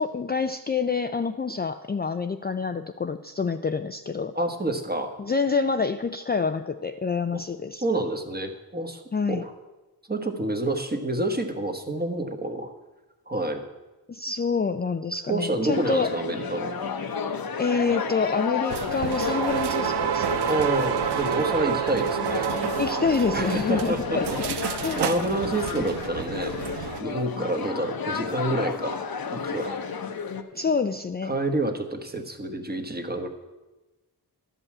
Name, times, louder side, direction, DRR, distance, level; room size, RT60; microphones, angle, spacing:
voice 1, 0.0-4.3 5.2-7.8 9.1-9.4 14.1-16.1 17.6-20.5 22.8-25.0 30.5-31.3, left 5 dB, 25° left, 8 dB, 0.4 m, -27 dB
voice 2, 4.3-5.1 7.3-7.4 7.8-9.0 9.3-9.5 10.1-12.7 13.3-13.6 15.3-16.7 20.5-22.6 23.3-24.4 24.6-29.1 29.3-29.8 31.3-33.3, right 2 dB, 25° right, 5 dB, 1.3 m, -28 dB
sound 1, 15.7-30.4, left 6 dB, 65° left, 0.9 m, -32 dB
sound 2, 18.7-27.0, right 9 dB, 85° right, 0.6 m, -29 dB
12.0 x 5.5 x 8.5 m, 1.1 s
wide cardioid pair, 80°, 39 cm